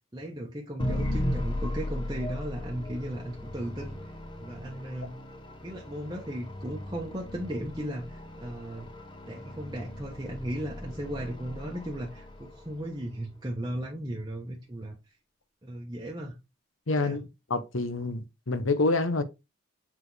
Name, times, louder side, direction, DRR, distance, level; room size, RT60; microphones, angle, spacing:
voice 1, 0.1-4.1 4.4-5.1 5.6-8.9 9.3-15.0 15.6-16.3 17.0-17.2, right 1 dB, 20° right, 1.0 m, -36 dB
sound 1, 0.8-13.0, left 1 dB, 25° left, 0.9 m, -37 dB
voice 2, 16.9-17.2 17.5-19.2, left 3 dB, 75° left, 0.9 m, -27 dB
7.4 x 4.2 x 3.2 m
head